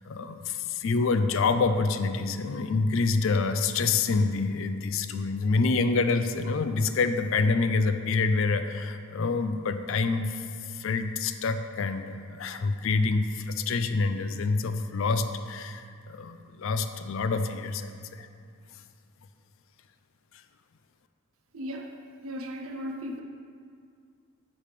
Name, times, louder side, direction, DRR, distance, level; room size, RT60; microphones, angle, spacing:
voice 1, 0.0-18.3, left 4 dB, 60° left, 9 dB, 0.4 m, -27 dB
voice 2, 21.5-21.9 22.2-23.2, equal, 70° right, 3 dB, 0.6 m, -36 dB
9.7 x 3.3 x 5.8 m, 2.2 s
head